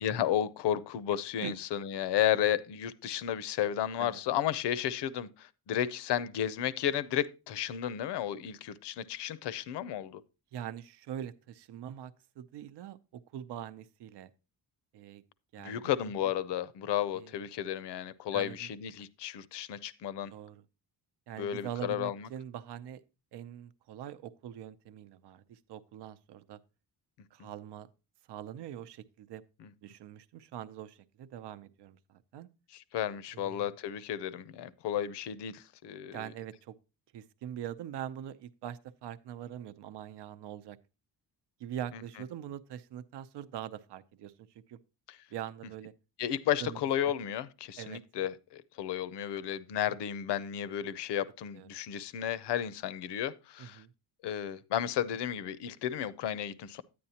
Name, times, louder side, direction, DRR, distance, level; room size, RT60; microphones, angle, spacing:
voice 1, 0.0-10.2 15.6-20.3 21.4-22.3 27.4-27.5 29.6-29.7 32.7-36.3 41.9-42.0 46.2-53.8 54.2-56.8, left 10 dB, 85° left, 0.7 m, -33 dB
voice 2, 10.5-14.3 14.9-15.2 15.5-15.9 17.1-17.3 18.3-18.7 20.3-20.6 21.3-23.0 23.3-26.6 27.3-27.9 28.3-29.4 29.8-32.5 33.3-33.7 36.1-36.7 37.1-40.8 41.6-44.8 45.3-45.9 46.6-46.8 47.8-48.0 51.5-51.7 53.6-53.9, right 10 dB, 80° right, 0.7 m, -43 dB
9.8 x 9.5 x 2.8 m
cardioid pair, 175°, 40 cm